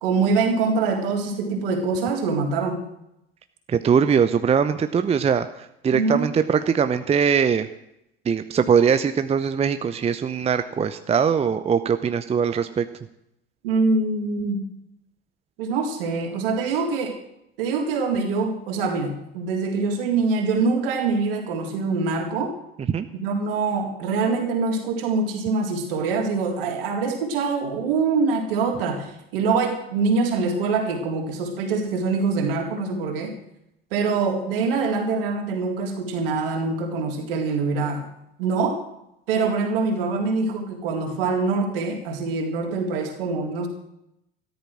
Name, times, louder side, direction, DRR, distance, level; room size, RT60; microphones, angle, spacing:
voice 1, 0.0-2.8 5.9-6.3 13.6-14.6 15.6-17.2 17.6-22.6 23.1-33.3 33.9-38.1 38.4-38.8 39.3-43.7, right 4 dB, 65° right, 3 dB, 3.5 m, -24 dB
voice 2, 3.7-7.7 8.3-12.8 22.9-23.1, right 7 dB, 20° right, 10 dB, 0.8 m, -21 dB
13.5 x 13.0 x 6.2 m, 0.81 s
figure-of-eight pair, 70°, 31 cm